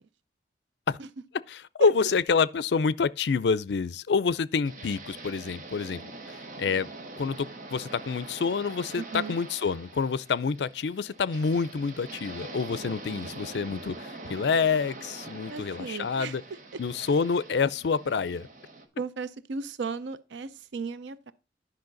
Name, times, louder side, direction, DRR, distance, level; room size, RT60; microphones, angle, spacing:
voice 1, 1.5-6.9 7.2-16.4 16.8-18.5, left 5 dB, 70° left, 0.4 m, -27 dB
sound 1, 4.6-18.9, right 2 dB, 45° right, 1.3 m, -44 dB
voice 2, 9.0-9.4 15.5-16.3 19.0-21.3, right 5 dB, 85° right, 0.5 m, -35 dB
10.5 x 5.6 x 3.9 m
head